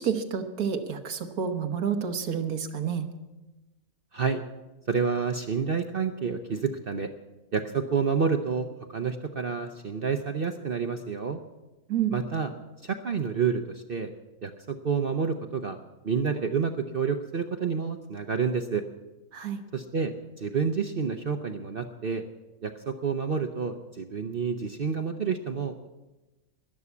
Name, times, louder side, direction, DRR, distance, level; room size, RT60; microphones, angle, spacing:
voice 1, 0.0-3.1 11.9-12.2 19.3-19.6, right 7 dB, 70° right, 6 dB, 1.7 m, -29 dB
voice 2, 4.9-7.1 7.5-11.4 12.1-12.5 12.8-14.1 14.4-15.8 16.0-18.8 19.7-22.3 22.6-25.9, right 6 dB, 45° right, 6 dB, 0.8 m, -29 dB
12.5 x 11.0 x 8.3 m, 1.1 s
omnidirectional pair, 1.6 m